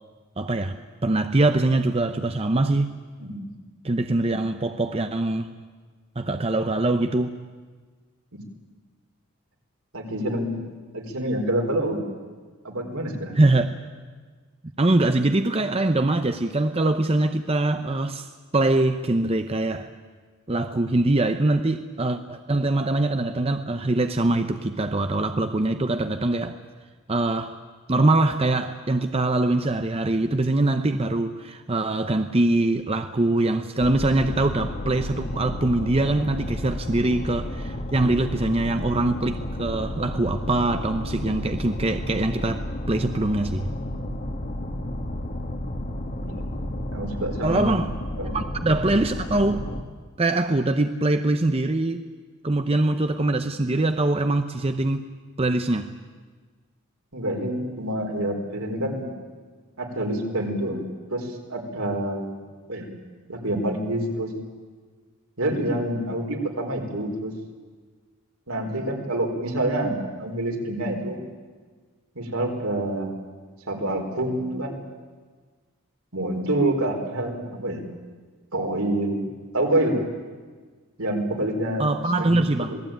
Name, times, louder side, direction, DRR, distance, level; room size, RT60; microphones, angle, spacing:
voice 1, 0.4-3.0 3.8-5.5 6.2-7.3 13.3-13.8 14.8-19.9 20.5-26.6 27.1-27.6 27.9-43.7 47.4-47.9 48.3-49.7 50.2-52.0 52.4-55.1 55.4-55.9 81.8-82.8, right 2 dB, 25° right, 8 dB, 0.7 m, -23 dB
voice 2, 3.2-3.5 8.3-8.4 9.9-10.6 10.9-12.1 12.6-13.4 46.2-46.6 46.9-47.7 48.2-48.3 57.1-59.1 59.8-62.9 63.3-64.3 65.4-67.3 68.5-71.2 72.1-73.1 73.7-74.8 76.1-77.9 78.5-79.3 79.5-80.0 81.0-81.9 82.2-82.8, right 1 dB, 75° right, 2 dB, 4.4 m, -27 dB
sound 1, 33.8-49.8, left 1 dB, 40° left, 1.7 m, -32 dB
26.5 x 19.0 x 9.2 m, 1.5 s
head